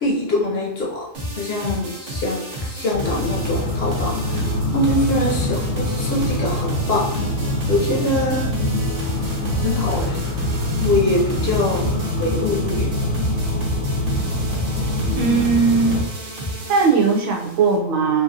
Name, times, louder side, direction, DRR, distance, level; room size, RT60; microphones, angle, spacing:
voice 1, 0.0-1.1 1.4-4.5 4.7-7.2 7.7-8.5 9.5-10.2 10.8-11.9 12.2-12.9, left 1 dB, 60° left, -3 dB, 0.7 m, -23 dB
sound 1, 1.1-17.8, equal, 45° right, 0.8 m, -31 dB
sound 2, 2.9-16.0, left 1 dB, 85° left, 1.0 m, -24 dB
voice 2, 15.1-16.0 16.7-18.2, right 5 dB, 80° right, 1 dB, 1.1 m, -18 dB
2.9 x 2.7 x 2.6 m, 0.91 s
omnidirectional pair, 1.4 m